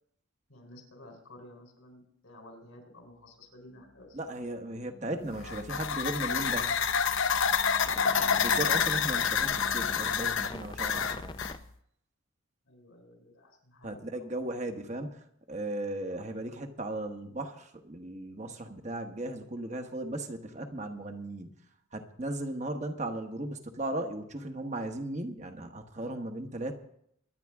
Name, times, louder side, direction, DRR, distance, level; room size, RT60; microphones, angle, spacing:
voice 1, 0.5-4.2 7.9-8.6 12.6-14.3, left 1 dB, 90° left, 3 dB, 3.9 m, -53 dB
sound 1, 3.8-4.2 4.5-11.6, left 2 dB, 20° left, 0.5 m, -45 dB
voice 2, 4.1-6.7 8.4-11.4 13.8-21.5 21.9-26.7, right 1 dB, 35° right, 5 dB, 1.3 m, -36 dB
sound 2, 5.3-11.6, left 6 dB, 70° left, 0.8 m, -28 dB
24.0 x 10.0 x 3.6 m, 0.71 s
head